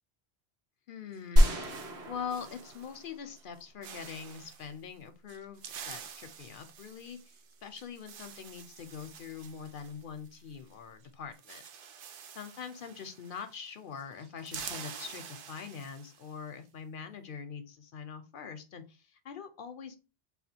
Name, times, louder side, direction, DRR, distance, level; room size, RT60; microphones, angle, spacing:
voice 1, 0.9-11.6 12.4-20.0, left 7 dB, 60° left, 8 dB, 0.6 m, -43 dB
sound 1, 1.1-3.1 3.4-3.6 3.8-4.7 5.3-10.7 11.0-11.1 11.3-13.7 14.0-16.4, right 7 dB, 60° right, 0.6 m, -48 dB
sound 2, 1.4-3.6, equal, 85° right, 1.3 m, -27 dB
3.5 x 2.3 x 4.2 m, 0.30 s
omnidirectional pair, 1.1 m